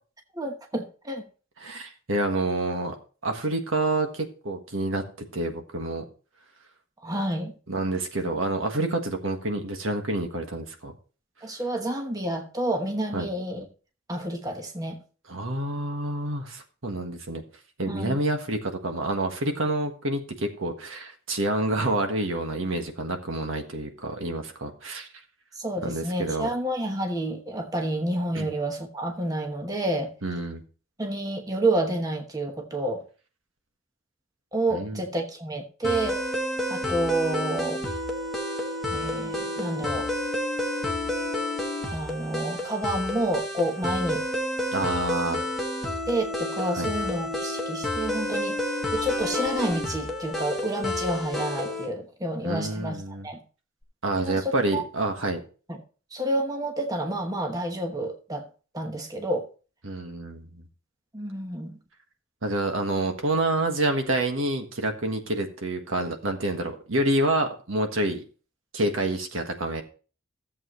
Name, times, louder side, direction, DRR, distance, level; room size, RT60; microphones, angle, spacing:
voice 1, 0.3-1.2 7.0-7.5 11.4-13.7 14.1-15.0 17.9-18.2 25.5-30.1 31.0-33.0 34.5-36.2 36.7-37.8 38.9-40.1 41.9-44.2 46.1-53.4 54.1-54.8 55.7-55.8 56.1-58.4 58.7-59.5 61.1-61.8, right 1 dB, 15° right, 1.0 m, -29 dB
voice 2, 1.6-2.9 3.2-6.0 7.7-10.9 13.1-13.3 15.3-17.4 17.8-25.1 25.8-26.5 28.3-28.5 30.2-30.6 34.7-35.0 44.7-45.4 46.7-46.9 52.4-53.3 54.0-55.4 59.8-60.7 62.4-68.2 68.7-69.8, right 2 dB, 70° right, 1.5 m, -28 dB
sound 1, 35.8-51.9, left 1 dB, ahead, 1.2 m, -30 dB
14.0 x 7.6 x 3.1 m
head